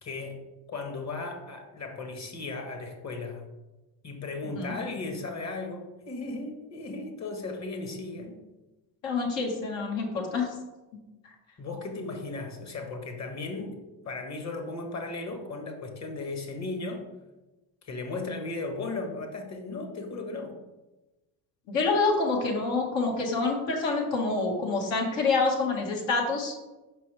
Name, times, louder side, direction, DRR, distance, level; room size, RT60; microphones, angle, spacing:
voice 1, 0.0-0.4 0.7-3.4 4.0-8.4 11.6-17.0 17.8-20.5, left 3 dB, 35° left, 4 dB, 1.3 m, -36 dB
voice 2, 9.0-10.5 21.7-26.5, left 3 dB, 70° left, 0 dB, 1.7 m, -27 dB
5.5 x 5.4 x 3.3 m, 1.1 s
supercardioid pair, 70°, 46 cm